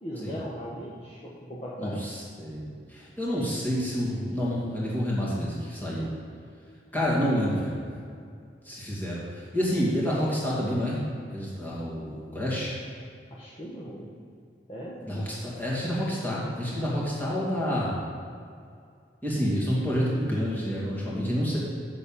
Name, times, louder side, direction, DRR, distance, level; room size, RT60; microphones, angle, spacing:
voice 1, 0.0-2.0 13.3-14.1 14.7-15.0, equal, 35° left, -6 dB, 1.1 m, -38 dB
voice 2, 1.8-2.6 2.9-6.1 6.9-7.8 8.6-12.7 15.0-18.0 19.2-21.6, equal, 10° left, -7 dB, 2.3 m, -28 dB
7.1 x 6.7 x 7.3 m, 2.3 s
head